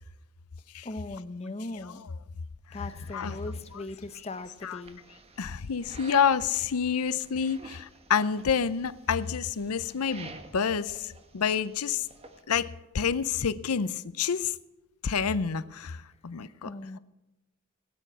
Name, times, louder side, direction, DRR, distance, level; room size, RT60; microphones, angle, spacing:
voice 1, 0.8-2.0 2.7-5.0 16.6-17.0, left 2 dB, 30° left, 10 dB, 0.7 m, -39 dB
voice 2, 1.7-2.1 2.7-2.8 3.1-3.4 3.7-3.8 4.6-4.8 5.4-12.1 12.5-14.5 15.0-16.7, left 7 dB, 85° left, 15 dB, 0.6 m, -28 dB
sound 1, 2.7-12.4, right 3 dB, 25° right, 1.3 m, -52 dB
17.5 x 9.1 x 6.1 m, 1.0 s
head